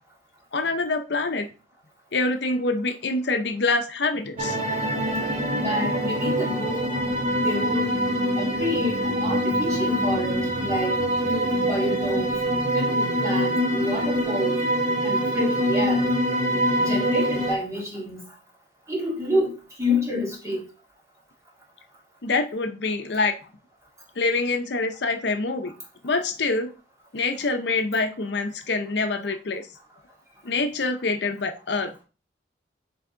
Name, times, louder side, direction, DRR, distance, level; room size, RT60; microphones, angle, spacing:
voice 1, 0.5-1.5 2.1-4.6 22.2-23.4 24.2-25.7 26.0-26.7 27.1-29.7 30.4-31.9, left 3 dB, 65° left, 7 dB, 0.7 m, -25 dB
sound 1, 4.4-17.6, equal, 35° right, 1.1 m, -24 dB
voice 2, 5.6-6.8 7.4-7.9 8.4-11.0 11.2-12.4 12.7-14.6 15.0-16.1 16.8-18.2 18.9-20.6, left 1 dB, 15° right, -3 dB, 2.1 m, -28 dB
8.0 x 3.4 x 3.8 m, 0.34 s
head